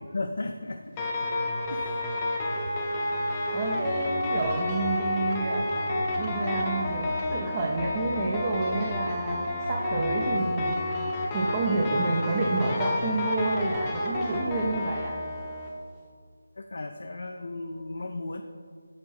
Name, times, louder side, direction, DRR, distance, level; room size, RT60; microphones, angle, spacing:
voice 1, 0.0-1.0 1.7-2.0 16.6-18.4, left 2 dB, 60° left, 5 dB, 0.4 m, -35 dB
sound 1, 1.0-15.7, left 1 dB, 20° left, 0.7 m, -30 dB
voice 2, 3.5-5.7 6.2-11.1 11.3-15.2, right 3 dB, 25° right, -1 dB, 0.5 m, -29 dB
7.9 x 3.7 x 4.2 m, 2.1 s
figure-of-eight pair, 160°, 0 cm